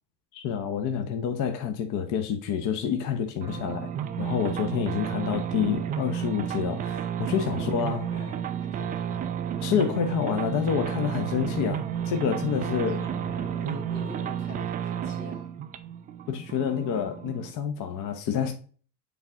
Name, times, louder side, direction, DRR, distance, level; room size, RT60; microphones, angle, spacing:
voice 1, 0.3-3.9 4.2-8.0 9.6-13.0 16.3-18.5, left 8 dB, 40° left, 0.9 m, -28 dB
sound 1, 3.4-17.5, right 9 dB, 20° right, 0.3 m, -32 dB
voice 2, 7.6-9.3 12.6-15.5, left 3 dB, 80° left, 2.4 m, -43 dB
7.2 x 3.9 x 3.6 m
hypercardioid pair, 80°, 49 cm